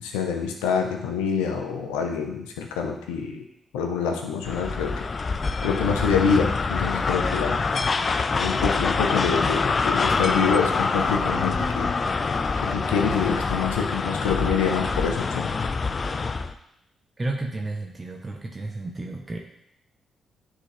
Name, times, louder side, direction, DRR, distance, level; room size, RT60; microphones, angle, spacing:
voice 1, 0.0-3.4 3.7-5.0 5.6-7.6 8.4-11.9 12.6-15.5, left 6 dB, 85° left, 3 dB, 0.7 m, -26 dB
sound 1, 4.4-16.5, left 4 dB, 45° left, 0.5 m, -25 dB
voice 2, 17.2-19.4, right 2 dB, 30° right, 0 dB, 1.0 m, -32 dB
9.8 x 3.8 x 3.4 m, 0.78 s
hypercardioid pair, 40°, 0 cm